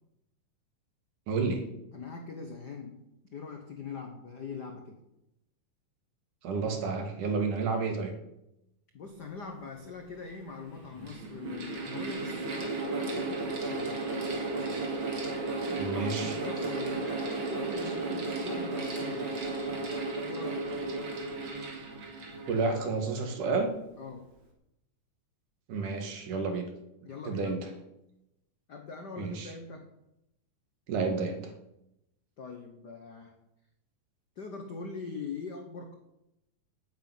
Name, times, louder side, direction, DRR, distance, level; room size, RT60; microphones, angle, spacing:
voice 1, 1.3-1.6 6.4-8.1 15.7-16.4 22.5-23.7 25.7-26.7 27.2-27.7 29.2-29.5 30.9-31.4, right 4 dB, 70° right, 5 dB, 3.2 m, -30 dB
voice 2, 1.9-3.0 3.3-5.0 8.9-14.0 15.8-19.3 20.3-20.7 24.0-24.3 27.0-27.6 28.7-29.9 32.4-33.3 34.4-35.9, left 4 dB, 75° left, 4 dB, 0.9 m, -42 dB
Mechanical fan, 9.7-9.8 10.7-23.4, right 3 dB, 40° right, 2.9 m, -34 dB
9.4 x 8.3 x 9.2 m, 0.88 s
omnidirectional pair, 3.8 m